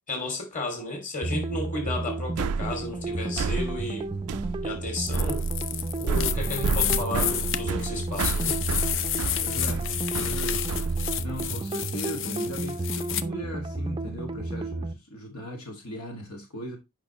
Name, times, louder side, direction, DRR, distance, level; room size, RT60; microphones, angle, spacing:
voice 1, 0.1-4.1 4.6-5.5 6.0-8.6, left 2 dB, 35° left, 2.8 m, -33 dB
sound 1, 1.2-14.9, right 2 dB, 20° right, 0.5 m, -32 dB
sound 2, 2.4-11.5, right 5 dB, 75° right, 0.4 m, -30 dB
sound 3, 5.0-13.2, left 11 dB, 60° left, 0.5 m, -31 dB
voice 2, 9.4-10.7 11.2-16.8, equal, 75° left, 2.1 m, -38 dB
8.7 x 5.4 x 3.0 m
head